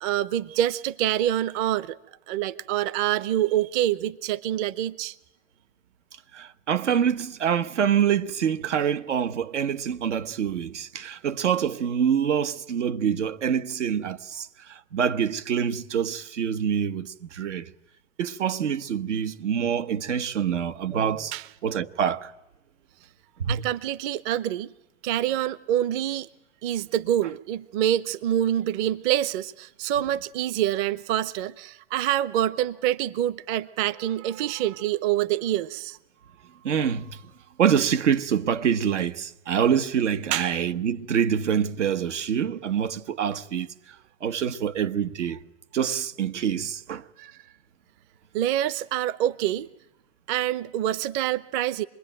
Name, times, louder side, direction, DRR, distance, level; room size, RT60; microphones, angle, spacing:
voice 1, 0.0-2.0 2.3-5.1 21.3-21.5 23.5-24.7 25.0-26.3 26.6-36.0 40.3-40.6 47.2-47.4 48.3-49.7 50.3-51.8, right 12 dB, 45° right, 0.8 m, -26 dB
voice 2, 6.3-17.7 18.2-21.3 21.6-22.3 23.4-23.6 36.6-37.2 37.6-43.7 44.2-45.4 45.7-47.0, right 8 dB, 85° right, 1.2 m, -26 dB
27.0 x 21.0 x 9.1 m
hypercardioid pair, 125°, 35 cm